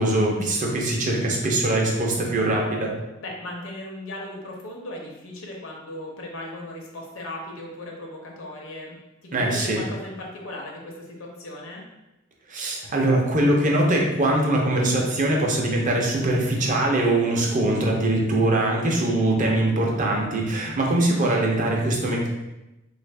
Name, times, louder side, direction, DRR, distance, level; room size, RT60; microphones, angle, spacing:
voice 1, 0.0-2.9 9.3-9.8 12.5-22.3, right 1 dB, 40° right, -1 dB, 0.6 m, -22 dB
voice 2, 3.2-9.0 9.3-11.8, left 1 dB, 75° left, 0 dB, 0.8 m, -37 dB
3.3 x 2.5 x 3.3 m, 0.97 s
head